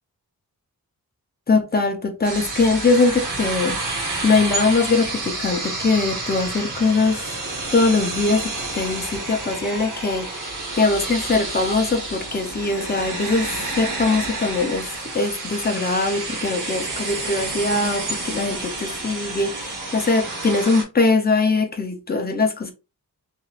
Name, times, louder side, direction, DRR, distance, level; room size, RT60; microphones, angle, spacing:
voice 1, 1.5-3.8 4.2-7.2 7.7-10.3 10.8-13.5 13.8-14.9 15.1-22.7, left 3 dB, 25° left, 0.5 m, -21 dB
sound 1, 2.2-20.8, right 2 dB, 60° right, 1.0 m, -29 dB
3.0 x 2.9 x 2.3 m
wide cardioid pair, 170°, 36 cm